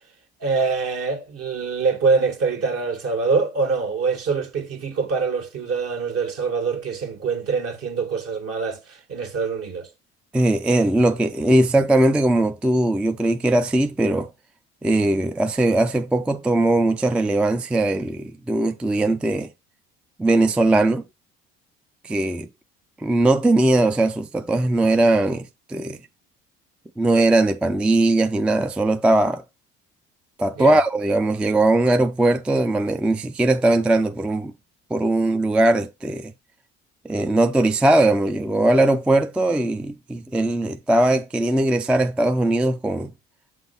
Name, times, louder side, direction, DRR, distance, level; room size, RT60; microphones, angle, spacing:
voice 1, 0.4-9.9 30.6-30.8, right 4 dB, 50° right, 1.6 m, -24 dB
voice 2, 10.3-14.3 14.8-19.5 20.2-21.1 22.0-22.5 23.0-26.0 27.0-29.4 30.4-34.5 34.9-36.3 37.0-43.1, right 2 dB, 5° right, 0.3 m, -20 dB
6.0 x 3.2 x 5.5 m
hypercardioid pair, 70°, 30 cm